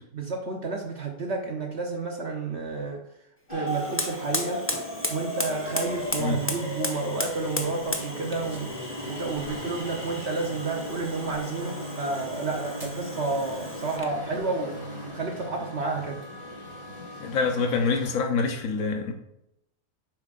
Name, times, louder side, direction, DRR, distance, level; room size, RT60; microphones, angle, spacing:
voice 1, 0.1-3.0 3.5-4.6 5.1-8.7 9.1-14.8 15.1-16.2, right 3 dB, 55° right, 1 dB, 1.1 m, -31 dB
sound 1, 3.5-18.1, equal, 40° left, 3.1 m, -37 dB
Fire, 3.6-14.2, left 1 dB, 15° left, 0.6 m, -36 dB
sound 2, 7.3-10.7 11.3-11.4 12.8-13.0 13.9-14.4, right 1 dB, 20° right, 2.7 m, -45 dB
voice 2, 17.2-19.1, left 4 dB, 80° left, 3 dB, 1.3 m, -26 dB
9.4 x 7.2 x 2.5 m, 0.83 s
omnidirectional pair, 1.4 m